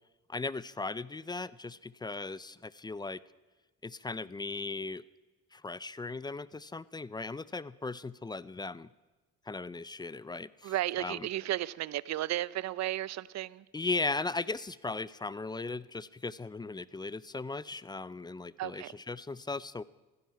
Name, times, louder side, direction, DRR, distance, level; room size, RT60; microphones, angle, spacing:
voice 1, 0.3-3.2 3.8-5.0 5.5-8.9 9.5-11.3 13.7-19.8, left 3 dB, 15° left, 19 dB, 0.4 m, -37 dB
voice 2, 10.6-13.6 18.6-18.9, right 14 dB, 60° right, 21 dB, 0.5 m, -34 dB
15.5 x 14.5 x 5.7 m, 1.2 s
cardioid pair, 90°, 30 cm